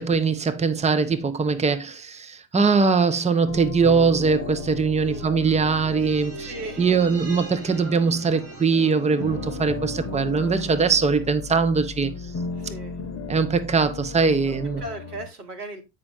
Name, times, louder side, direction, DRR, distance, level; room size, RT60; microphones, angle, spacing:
voice 1, 0.0-6.5 6.8-12.1 13.3-14.8, right 5 dB, 15° right, 1.0 m, -21 dB
sound 1, 3.5-8.7 9.0-15.3, left 4 dB, 35° left, 1.1 m, -36 dB
sound 2, 5.2-11.8 12.1-12.2, right 1 dB, 30° right, 2.9 m, -40 dB
voice 2, 6.3-7.0 12.5-13.0 14.4-15.8, right 1 dB, 85° right, 1.4 m, -37 dB
8.5 x 5.4 x 3.5 m
hypercardioid pair, 65°, 45 cm